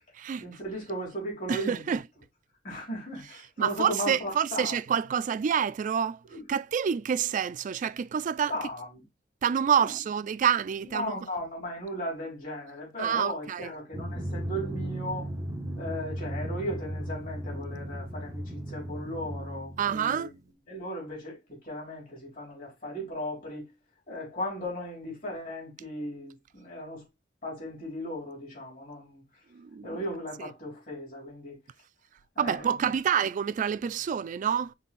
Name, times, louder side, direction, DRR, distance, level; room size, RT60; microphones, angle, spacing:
voice 1, 0.4-2.0 2.6-4.8 6.3-6.4 8.5-9.0 9.7-9.9 10.8-15.3 15.8-20.3 20.7-23.7 24.1-27.0 27.4-29.2 29.8-31.6 32.3-32.7, equal, 45° left, 3.3 m, -36 dB
voice 2, 1.5-2.0 3.6-6.2 6.5-8.5 9.4-11.1 13.0-13.7 19.8-20.3 29.5-30.0 32.4-34.7, right 8 dB, 45° right, 0.3 m, -27 dB
Drum, 13.9-20.4, right 1 dB, 20° right, 0.8 m, -36 dB
5.5 x 4.0 x 2.4 m
head